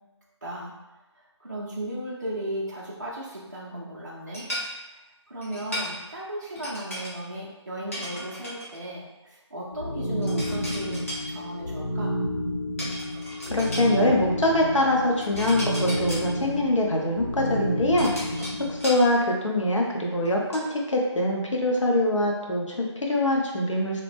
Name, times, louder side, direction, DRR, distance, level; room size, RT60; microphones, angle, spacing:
voice 1, 0.4-0.7 1.4-4.4 5.3-12.2, right 1 dB, 40° right, -5 dB, 0.4 m, -35 dB
sound 1, 4.3-4.7 5.4-5.9 6.5-7.1 7.9-8.8 10.2-11.2 12.8-13.9 15.2-16.2 17.5-19.0 19.6-19.7 20.1-20.7, equal, 30° left, 0.7 m, -35 dB
sound 2, 9.7-19.0, equal, 65° left, 1.2 m, -30 dB
voice 2, 13.5-18.1 18.8-24.0, left 1 dB, 85° left, -2 dB, 0.8 m, -24 dB
2.8 x 2.0 x 3.2 m, 1.0 s
figure-of-eight pair, 170°, 15 cm